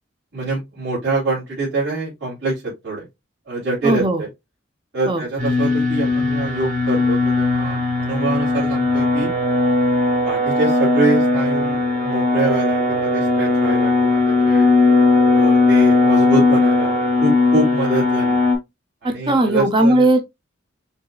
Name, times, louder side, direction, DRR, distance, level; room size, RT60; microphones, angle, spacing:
voice 1, 0.3-3.1 3.5-4.3 4.9-9.3 10.2-14.7 15.3-18.4 19.0-20.0, right 2 dB, 60° right, 2.7 m, -25 dB
voice 2, 3.8-4.2 5.1-5.2 19.0-20.2, right 1 dB, 25° right, 0.7 m, -17 dB
sound 1, 5.4-18.5, left 3 dB, 40° right, 1.6 m, -18 dB
5.3 x 3.9 x 2.3 m
head